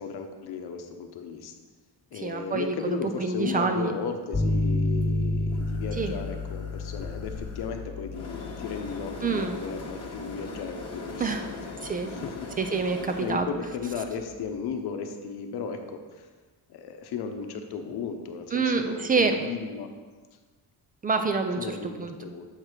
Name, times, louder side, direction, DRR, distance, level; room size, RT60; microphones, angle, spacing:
voice 1, 0.0-1.5 2.1-11.8 12.1-12.5 13.2-16.3 16.7-19.9 21.6-22.5, left 6 dB, 65° left, 5 dB, 0.9 m, -35 dB
voice 2, 2.1-3.9 6.0-6.2 9.2-9.6 11.2-11.5 11.8-12.1 12.6-13.5 18.5-19.4 21.0-22.1, right 4 dB, 20° right, 6 dB, 0.3 m, -27 dB
sound 1, 4.3-14.2, left 2 dB, 10° left, 1.3 m, -32 dB
sound 2, 4.9-13.4, left 2 dB, 35° left, 1.1 m, -41 dB
7.4 x 4.5 x 5.0 m, 1.4 s
cardioid pair, 160°, 42 cm